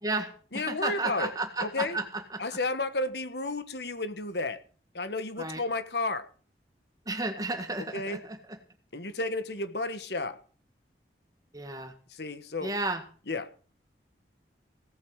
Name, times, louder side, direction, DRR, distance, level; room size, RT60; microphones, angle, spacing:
voice 1, 0.0-2.4 5.4-5.6 7.1-8.6 11.5-11.9 12.6-13.0, right 2 dB, 20° right, 1.8 m, -33 dB
voice 2, 0.5-1.3 1.6-2.0 2.4-4.6 4.9-6.3 7.9-8.2 8.9-10.4 12.1-12.7 13.3-13.5, left 2 dB, 75° left, 1.4 m, -32 dB
17.5 x 8.4 x 6.4 m
head